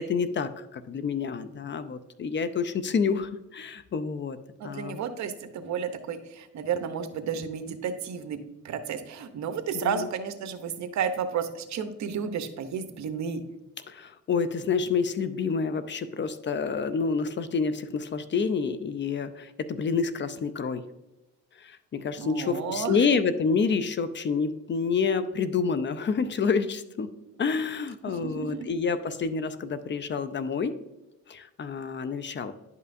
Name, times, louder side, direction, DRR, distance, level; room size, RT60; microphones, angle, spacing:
voice 1, 0.0-4.4 4.6-5.0 9.7-10.1 13.9-20.8 21.6-27.1 27.4-30.8 31.3-32.5, left 5 dB, 40° left, 13 dB, 0.5 m, -28 dB
voice 2, 4.6-8.4 8.6-13.4 22.2-23.1 28.0-28.7, right 7 dB, 65° right, 9 dB, 0.8 m, -32 dB
10.5 x 5.6 x 2.6 m, 0.98 s
cardioid pair, 90°, 30 cm